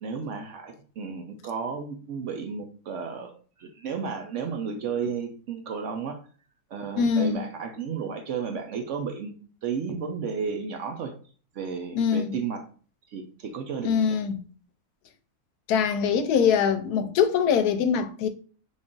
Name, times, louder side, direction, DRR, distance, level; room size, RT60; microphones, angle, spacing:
voice 1, 0.0-3.3 3.6-6.2 6.7-9.3 9.6-11.1 11.5-12.6 13.1-14.2, right 6 dB, 65° right, 0.8 m, -33 dB
voice 2, 7.0-7.4 11.9-12.3 13.8-14.4 15.7-18.3, left 7 dB, 90° left, 1.1 m, -23 dB
3.7 x 2.4 x 3.7 m
omnidirectional pair, 1.6 m